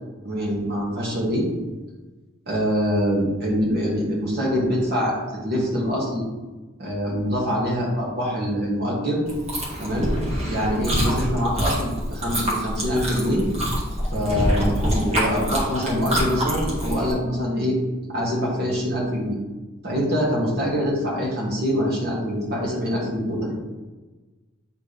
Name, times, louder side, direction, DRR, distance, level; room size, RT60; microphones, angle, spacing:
voice 1, 0.2-1.4 2.5-5.2 5.4-6.2 6.8-9.2 9.8-10.1 10.5-13.4 14.1-17.8 18.1-19.4 19.8-23.6, equal, 55° right, -4 dB, 1.9 m, -24 dB
Chewing mastication, 9.3-17.1, equal, 35° right, 1.6 m, -26 dB
8.0 x 4.3 x 3.4 m, 1.2 s
head